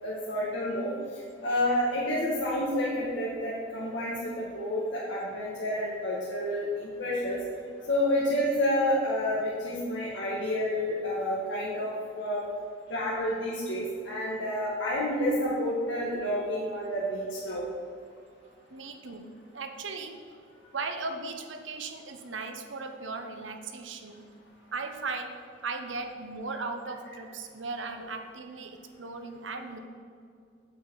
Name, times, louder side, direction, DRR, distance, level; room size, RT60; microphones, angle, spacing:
voice 1, 0.0-0.9 1.4-7.4 7.8-12.4 12.9-17.6, left 1 dB, 80° left, -6 dB, 1.7 m, -29 dB
voice 2, 18.7-20.4 20.7-24.2 24.7-25.4 25.6-29.8, right 3 dB, 85° right, 6 dB, 0.9 m, -37 dB
9.0 x 8.4 x 4.7 m, 2.3 s
head